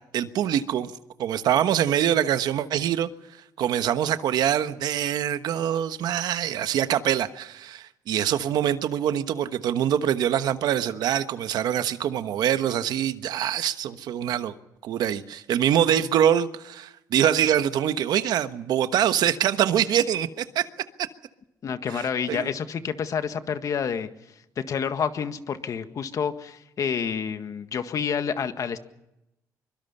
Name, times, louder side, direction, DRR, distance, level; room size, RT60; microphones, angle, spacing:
voice 1, 0.1-0.9 1.2-3.1 3.6-14.5 14.8-20.7 21.9-22.5, right 10 dB, 75° right, 1.3 m, -24 dB
voice 2, 21.6-24.1 24.6-28.8, left 7 dB, 55° left, 1.7 m, -28 dB
24.0 x 23.5 x 5.6 m
cardioid pair, 100°, 7 cm